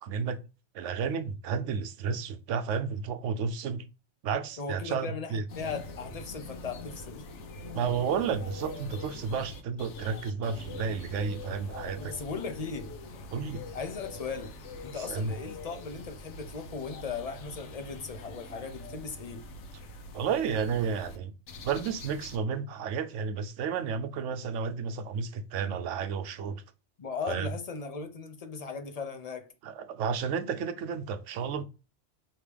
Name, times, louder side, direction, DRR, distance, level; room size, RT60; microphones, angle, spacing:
voice 1, 0.0-0.4 0.7-3.8 4.2-5.4 7.7-12.1 13.3-13.6 15.1-15.3 20.1-21.3 21.6-26.6 27.3-27.5 29.6-31.6, right 6 dB, 85° right, 0.9 m, -32 dB
voice 2, 4.6-7.3 12.0-12.9 13.7-14.6 14.8-19.5 27.0-29.5, left 5 dB, 40° left, 0.6 m, -38 dB
sound 1, 5.5-21.2 21.5-22.4, left 2 dB, 75° left, 1.0 m, -44 dB
5.0 x 2.9 x 3.3 m
omnidirectional pair, 1.2 m